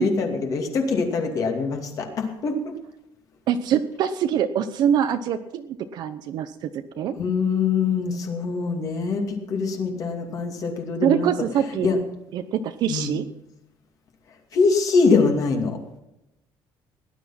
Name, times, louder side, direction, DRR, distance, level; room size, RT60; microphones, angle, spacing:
voice 1, 0.0-2.8 7.1-11.3 11.8-12.0 12.9-13.1 14.5-15.8, left 4 dB, 45° left, 3 dB, 2.5 m, -23 dB
voice 2, 3.5-6.7 7.0-7.1 11.0-11.9 12.3-13.2, right 9 dB, 55° right, 9 dB, 0.9 m, -24 dB
18.0 x 10.5 x 5.8 m, 0.87 s
cardioid pair, 175°, 8 cm